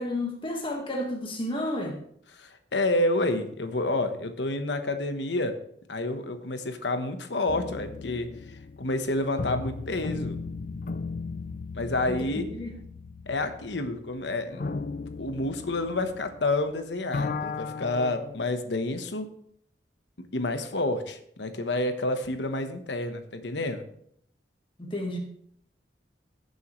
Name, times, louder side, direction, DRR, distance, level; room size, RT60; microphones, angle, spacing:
voice 1, 0.0-2.0 12.1-12.7 24.8-25.2, left 1 dB, 30° left, 1 dB, 1.6 m, -32 dB
voice 2, 2.3-5.6 5.9-10.4 11.7-12.5 13.3-14.6 15.0-19.3 20.2-23.8, left 2 dB, 80° left, 8 dB, 1.1 m, -29 dB
sound 1, 7.5-16.7 17.0-18.5, left 4 dB, 50° left, 0.5 m, -36 dB
17.0 x 7.0 x 3.2 m, 0.68 s
head